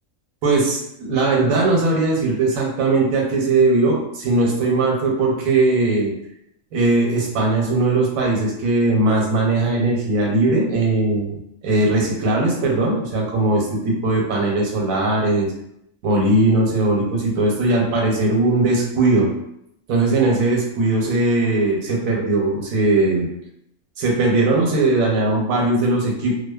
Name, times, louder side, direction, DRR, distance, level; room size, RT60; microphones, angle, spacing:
voice 1, 0.4-6.1 6.7-11.4 11.6-15.5 16.0-19.3 19.9-23.3 24.0-26.3, right 2 dB, 85° right, -1 dB, 1.1 m, -19 dB
2.5 x 2.2 x 2.2 m, 0.79 s
omnidirectional pair, 1.4 m